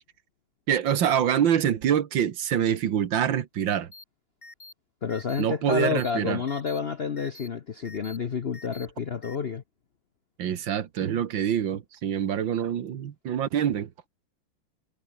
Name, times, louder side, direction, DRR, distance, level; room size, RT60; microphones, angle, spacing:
voice 1, 0.7-3.9 5.4-6.4 10.4-13.9, right 9 dB, 65° right, 2.0 m, -25 dB
sound 1, 3.9-4.0 4.4-4.7 5.1-5.4 5.8-6.1 6.5-6.8 7.2-7.5 7.8-8.2 8.5-8.9 9.2-9.4, left 2 dB, 15° left, 1.9 m, -47 dB
voice 2, 5.0-9.6, left 6 dB, 55° left, 0.7 m, -29 dB
omnidirectional pair, 2.2 m